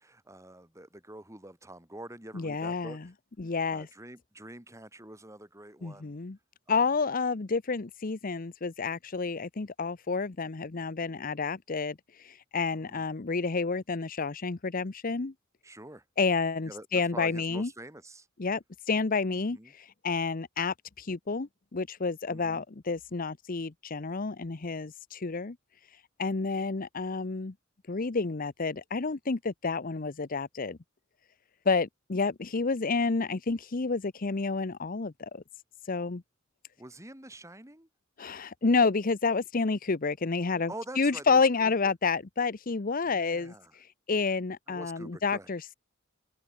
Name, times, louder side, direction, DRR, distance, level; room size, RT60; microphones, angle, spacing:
voice 1, 0.0-3.0 3.7-6.1 6.7-6.9 12.7-13.1 15.6-16.0 16.7-18.3 19.3-19.7 22.3-22.6 36.8-37.9 40.7-41.9 43.0-43.7 44.7-45.5, right 1 dB, 15° right, 7.2 m, -46 dB
voice 2, 2.3-3.0 3.4-3.9 5.8-6.4 6.7-15.3 16.2-17.7 18.4-25.6 26.2-27.5 27.9-30.8 31.7-35.4 35.9-36.2 38.2-45.7, left 4 dB, 45° left, 0.8 m, -30 dB
head